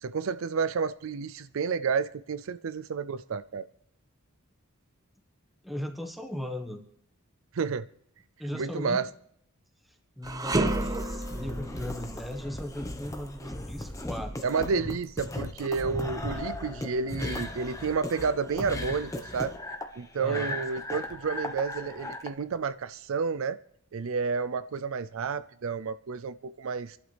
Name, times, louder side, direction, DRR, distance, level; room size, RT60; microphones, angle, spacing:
voice 1, 0.0-3.6 7.5-7.9 8.5-9.1 14.4-19.5 20.0-23.6 23.9-27.0, right 5 dB, 65° right, 0.4 m, -30 dB
voice 2, 5.6-6.8 8.4-9.0 10.2-14.3 20.2-20.6, left 1 dB, ahead, 1.4 m, -37 dB
sound 1, 10.2-22.3, left 1 dB, 15° left, 1.1 m, -37 dB
sound 2, 10.2-19.5 19.9-20.1 20.9-21.8, right 2 dB, 15° right, 0.6 m, -36 dB
27.0 x 11.5 x 3.4 m
head